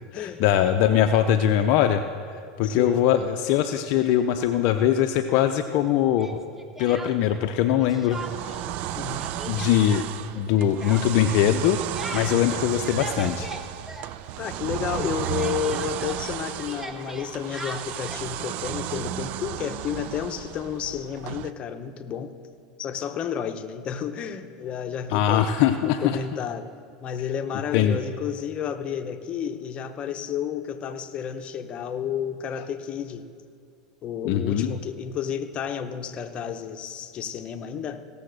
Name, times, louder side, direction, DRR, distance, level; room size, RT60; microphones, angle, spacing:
voice 1, 0.0-2.0 2.6-6.4 6.8-8.6 9.5-10.1 10.3-11.8 12.1-13.5 25.1-26.2 27.7-28.0 34.2-34.7, left 10 dB, 60° left, 7 dB, 0.6 m, -22 dB
voice 2, 2.6-3.1 8.9-9.4 14.4-22.3 22.8-25.5 25.8-26.7 27.0-33.3 34.0-38.0, left 8 dB, 35° left, 7 dB, 0.9 m, -31 dB
Speech, 6.2-7.5 7.8-8.7 8.9-14.6 14.9-18.3, right 2 dB, 10° right, 1.1 m, -40 dB
sound 1, 8.1-21.5, right 13 dB, 55° right, 0.4 m, -33 dB
16.5 x 7.0 x 6.6 m, 2.2 s
hypercardioid pair, 100°, 3 cm